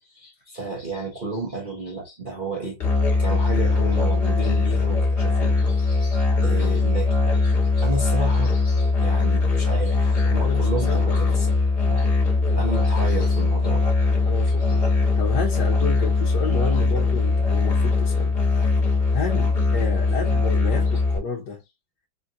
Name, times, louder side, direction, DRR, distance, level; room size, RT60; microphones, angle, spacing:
voice 1, 0.0-2.8 3.2-11.5 11.9-12.1 12.6-13.9 14.7-14.8 20.1-20.3, right 2 dB, 40° right, 0.7 m, -32 dB
Musical instrument, 2.8-21.2, left 3 dB, 35° left, 1.3 m, -21 dB
voice 2, 10.4-11.5 12.5-12.8 13.0-13.1 14.2-18.4 18.6-18.8 19.1-21.6, left 6 dB, 65° left, 1.3 m, -32 dB
4.4 x 2.6 x 2.6 m
omnidirectional pair, 2.2 m